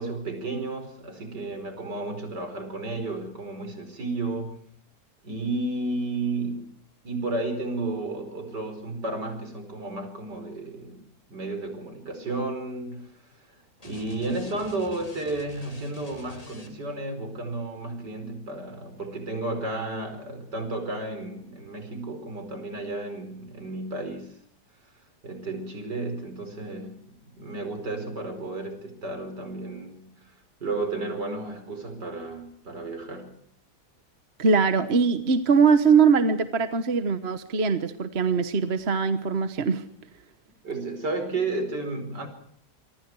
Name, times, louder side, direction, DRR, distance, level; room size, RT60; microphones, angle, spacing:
voice 1, 0.0-4.6 5.2-6.6 7.0-11.0 11.3-13.6 13.8-24.4 25.2-30.1 30.6-33.3 40.6-42.3, right 2 dB, 85° right, 7 dB, 5.4 m, -32 dB
sound 1, 13.8-17.0, left 1 dB, 20° left, 2.9 m, -46 dB
voice 2, 34.4-39.8, right 5 dB, 40° right, 10 dB, 1.3 m, -22 dB
27.0 x 24.0 x 4.7 m, 0.66 s
omnidirectional pair, 1.8 m